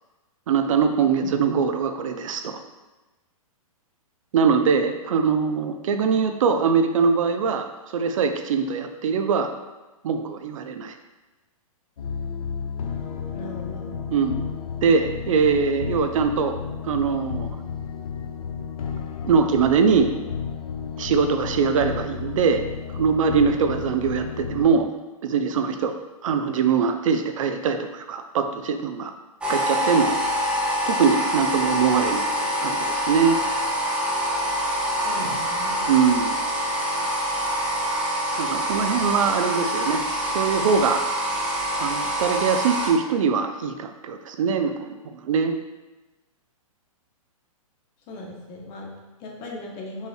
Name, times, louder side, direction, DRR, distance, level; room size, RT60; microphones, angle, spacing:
voice 1, 0.5-2.6 4.3-7.7 7.9-9.5 10.0-10.9 14.1-14.5 14.8-16.5 16.8-17.5 19.2-20.1 21.0-22.6 22.9-24.9 25.2-25.9 26.2-29.1 29.5-30.2 30.9-32.2 32.6-33.4 35.2-35.4 35.9-36.4 38.4-40.0 40.3-41.0 41.8-44.9 45.2-45.5, right 6 dB, 65° right, 7 dB, 0.4 m, -22 dB
sound 1, 12.0-24.7, left 6 dB, 75° left, 0.6 m, -32 dB
voice 2, 13.3-13.9 35.0-35.8 48.1-50.1, left 1 dB, 30° left, 0 dB, 0.7 m, -38 dB
sound 2, 29.4-42.9, equal, 5° right, 0.4 m, -25 dB
5.4 x 3.1 x 2.3 m, 1.1 s
hypercardioid pair, 135°, 18 cm